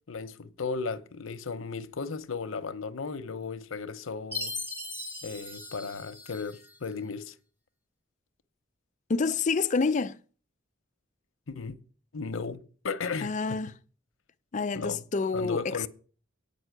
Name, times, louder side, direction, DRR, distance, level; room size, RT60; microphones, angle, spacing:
voice 1, 0.1-4.5 5.2-7.3 11.5-11.8 12.1-13.6 14.7-15.0 15.3-15.9, left 4 dB, 85° left, 0.8 m, -35 dB
Chime, 4.3-6.8, left 3 dB, 10° right, 1.3 m, -38 dB
voice 2, 9.1-10.2 13.2-13.7 14.5-15.8, left 4 dB, 40° left, 0.5 m, -28 dB
9.3 x 5.3 x 7.9 m
head